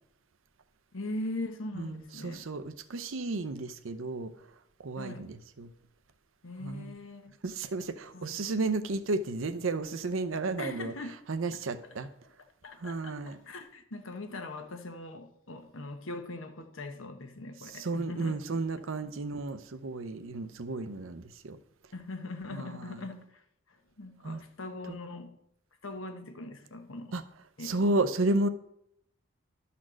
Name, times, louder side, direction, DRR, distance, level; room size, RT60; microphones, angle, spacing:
voice 1, 0.9-2.5 5.0-5.3 6.4-7.3 8.1-8.4 10.6-11.2 11.8-12.0 12.6-18.4 18.7-18.8 21.9-23.2 24.0-25.4 25.8-27.1 27.6-27.8, left 2 dB, 85° left, 1.1 m, -41 dB
voice 2, 1.7-4.3 4.8-5.7 6.6-6.9 7.4-10.9 11.3-12.1 12.8-13.4 17.6-21.6 22.5-23.0 24.2-24.4 27.1-27.2 27.6-28.5, right 2 dB, 85° right, 0.6 m, -32 dB
12.0 x 4.2 x 6.2 m
head